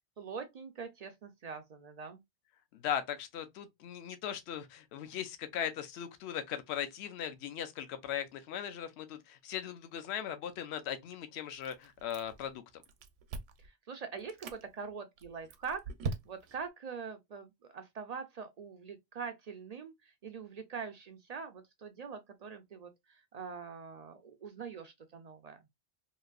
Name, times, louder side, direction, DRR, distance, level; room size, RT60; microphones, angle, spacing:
voice 1, 0.2-2.2 13.9-15.8 16.3-25.6, right 5 dB, 70° right, 0.3 m, -43 dB
voice 2, 2.7-12.8, left 9 dB, 70° left, 0.8 m, -39 dB
Chewing mastication, 11.6-12.5 12.8-13.7 14.2-14.6 15.2-16.6, right 4 dB, 85° right, 0.9 m, -41 dB
2.9 x 2.5 x 2.3 m
omnidirectional pair, 1.2 m